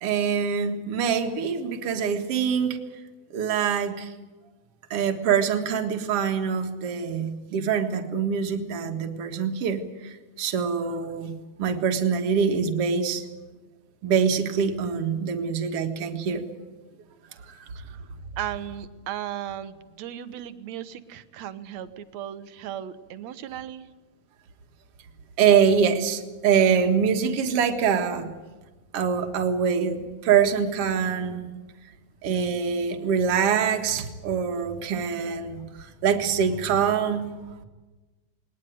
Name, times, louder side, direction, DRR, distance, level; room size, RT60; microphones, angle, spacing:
voice 1, 0.0-2.8 3.3-4.1 4.9-11.3 11.6-13.2 14.0-16.4 17.5-17.7 25.4-28.3 28.9-31.5 32.2-37.5, right 7 dB, 55° right, 5 dB, 2.5 m, -24 dB
voice 2, 17.7-18.0 18.4-23.9, right 11 dB, 70° right, 12 dB, 2.2 m, -36 dB
20.5 x 19.5 x 9.3 m, 1.2 s
omnidirectional pair, 3.4 m